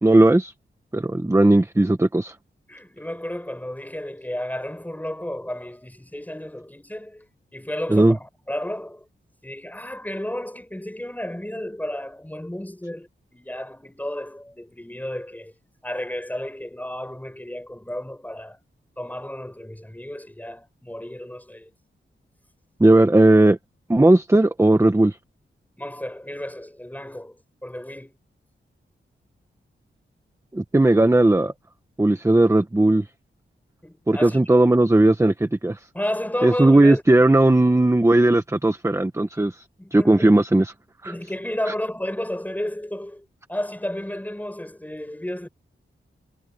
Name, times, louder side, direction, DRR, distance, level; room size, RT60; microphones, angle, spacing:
voice 1, 0.0-0.5 0.9-2.3 7.9-8.2 22.8-23.6 23.9-25.2 30.5-31.5 32.0-33.0 34.1-35.8 36.4-39.6 39.9-40.7 41.0-41.1, right 2 dB, 15° right, 1.2 m, -17 dB
voice 2, 2.7-7.2 7.5-9.0 9.4-15.5 15.8-18.6 19.0-21.7 25.8-27.4 27.6-28.1 33.8-34.5 35.9-37.3 39.8-40.3 41.0-45.5, left 1 dB, 10° left, 4.9 m, -32 dB
wide cardioid pair, 85°, 20 cm